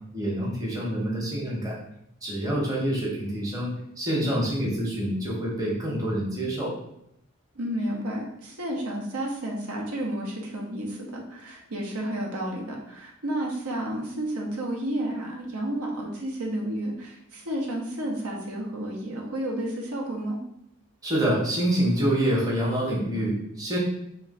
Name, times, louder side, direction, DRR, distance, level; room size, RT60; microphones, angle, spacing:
voice 1, 0.1-1.8 2.2-6.7 21.0-23.8, right 1 dB, 15° right, -4 dB, 0.9 m, -26 dB
voice 2, 7.5-20.4, right 1 dB, 85° right, -1 dB, 0.9 m, -31 dB
3.1 x 2.9 x 4.1 m, 0.77 s
head